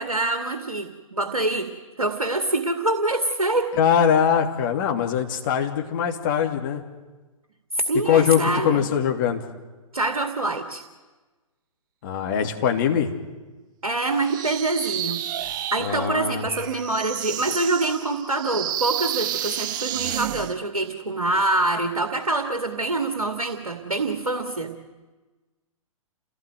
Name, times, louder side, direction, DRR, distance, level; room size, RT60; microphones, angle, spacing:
voice 1, 0.0-1.7 2.0-3.7 7.9-8.9 9.9-10.8 13.8-15.2 15.7-24.7, right 2 dB, 75° right, 5 dB, 2.3 m, -25 dB
voice 2, 3.8-6.8 8.0-9.4 12.0-13.1 15.8-16.4, left 8 dB, 35° left, 3 dB, 3.0 m, -22 dB
sound 1, 14.2-20.6, right 11 dB, 35° right, 0.7 m, -31 dB
29.0 x 17.5 x 9.3 m, 1.3 s
figure-of-eight pair, 120°, 18 cm